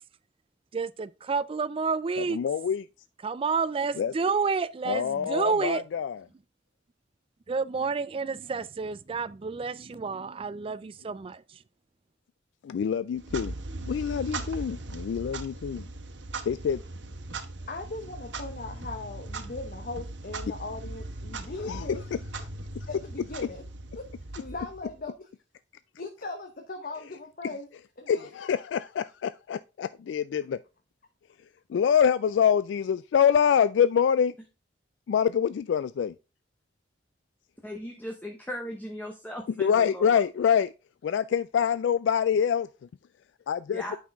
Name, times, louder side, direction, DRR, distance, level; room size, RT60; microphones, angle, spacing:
voice 1, 0.7-2.4 3.2-5.8 7.5-11.4, right 5 dB, 30° right, 0.4 m, -29 dB
voice 2, 2.2-2.8 4.0-4.1 4.9-6.2 12.6-13.5 13.9-15.8 16.4-16.8 21.7-21.9 28.1-30.6 31.7-34.3 35.1-36.1 39.6-40.7 41.0-42.7 43.5-43.8, left 8 dB, 75° left, 0.3 m, -25 dB
Clock, 13.1-25.1, right 2 dB, 75° right, 1.2 m, -39 dB
voice 3, 17.7-22.0 22.9-23.6 23.9-24.1 24.4-25.3 26.0-27.7 28.0-28.3, left 3 dB, 50° left, 0.9 m, -39 dB
voice 4, 37.6-40.2 43.7-44.0, equal, 10° left, 1.0 m, -38 dB
8.6 x 5.6 x 3.5 m
head